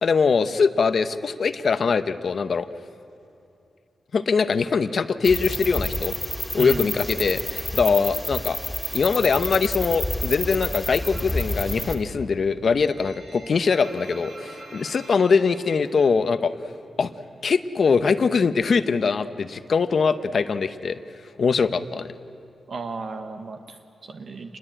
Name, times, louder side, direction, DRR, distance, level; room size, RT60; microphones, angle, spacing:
voice 1, 0.0-2.7 4.1-6.2 6.5-8.6 8.9-16.5 17.0-17.1 17.4-21.0 21.4-22.1, left 5 dB, 55° left, 11 dB, 0.8 m, -22 dB
sound 1, 5.2-11.9, left 1 dB, 5° left, 2.3 m, -29 dB
voice 2, 6.6-7.0 22.7-24.6, right 4 dB, 60° right, 6 dB, 1.2 m, -34 dB
sound 2, 11.0-11.5 11.8-16.7 16.9-18.0 18.3-21.1, right 2 dB, 75° right, 6.4 m, -45 dB
27.0 x 21.0 x 8.9 m, 2.7 s
wide cardioid pair, 125°, 0 cm